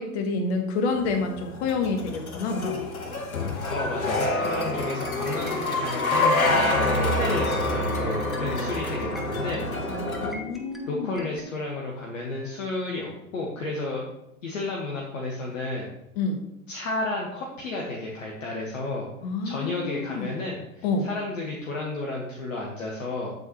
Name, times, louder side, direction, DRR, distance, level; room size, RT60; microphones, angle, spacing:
voice 1, 0.0-2.8 9.9-11.1 16.2-16.4 19.2-20.3 20.8-21.1, left 3 dB, 50° left, 5 dB, 1.3 m, -28 dB
sound 1, 1.0-10.3, left 2 dB, 80° left, 1.3 m, -27 dB
voice 2, 3.7-9.7 10.9-14.0 14.4-15.9 16.7-19.1 19.4-23.3, left 2 dB, 65° left, -1 dB, 1.5 m, -32 dB
sound 2, 4.3-11.5, left 1 dB, ahead, 0.3 m, -43 dB
8.0 x 8.0 x 3.0 m, 0.86 s
figure-of-eight pair, 90°, 41 cm